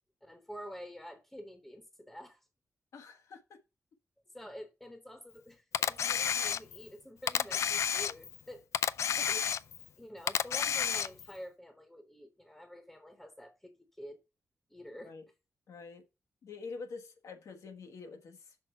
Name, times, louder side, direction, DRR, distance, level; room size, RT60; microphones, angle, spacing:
voice 1, 0.2-2.5 4.3-8.7 9.3-9.4 10.0-14.2 14.7-15.1, equal, 5° left, 0.8 m, -48 dB
voice 2, 2.9-3.4 9.1-9.4 15.0-15.2 15.7-16.0 16.4-18.6, left 4 dB, 85° left, 1.3 m, -46 dB
Camera, 5.7-6.9 7.3-8.4 8.7-9.9 10.3-11.3, left 8 dB, 70° left, 0.3 m, -31 dB
6.2 x 4.4 x 5.4 m
wide cardioid pair, 150°, 5 cm